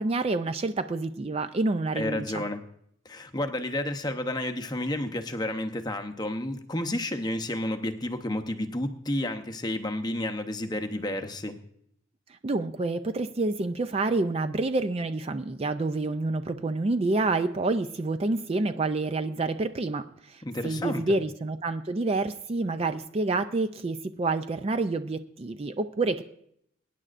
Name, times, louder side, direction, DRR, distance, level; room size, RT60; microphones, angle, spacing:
voice 1, 0.0-2.4 12.3-26.2, right 3 dB, 30° right, 10 dB, 0.4 m, -28 dB
voice 2, 2.0-2.6 3.0-11.6 20.4-21.0, left 1 dB, 20° left, 7 dB, 0.8 m, -31 dB
23.5 x 9.9 x 2.5 m, 0.71 s
head